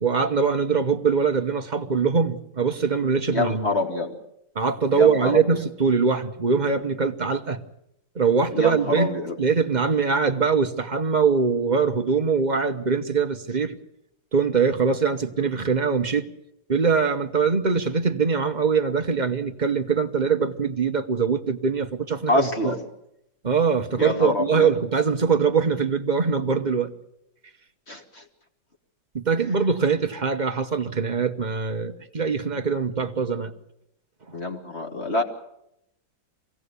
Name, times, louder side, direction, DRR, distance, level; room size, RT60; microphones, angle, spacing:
voice 1, 0.0-3.7 4.5-7.6 8.1-13.8 14.3-16.3 16.7-22.8 23.4-26.9 29.1-33.5 34.3-34.4, right 5 dB, 30° right, 0.9 m, -23 dB
voice 2, 3.3-4.1 4.9-5.4 8.5-9.3 22.3-22.8 24.0-24.7 27.9-28.2 34.3-35.2, left 2 dB, 35° left, 2.6 m, -26 dB
24.0 x 17.0 x 8.3 m
omnidirectional pair, 2.0 m